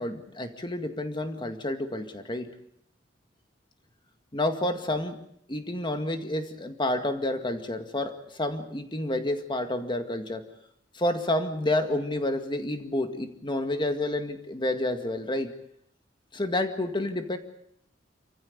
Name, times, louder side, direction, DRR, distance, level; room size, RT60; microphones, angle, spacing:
voice 1, 0.0-2.5 4.3-5.2 5.5-10.4 10.9-15.5 16.3-17.4, left 1 dB, 25° left, 7 dB, 2.1 m, -29 dB
28.0 x 15.0 x 8.7 m, 0.72 s
head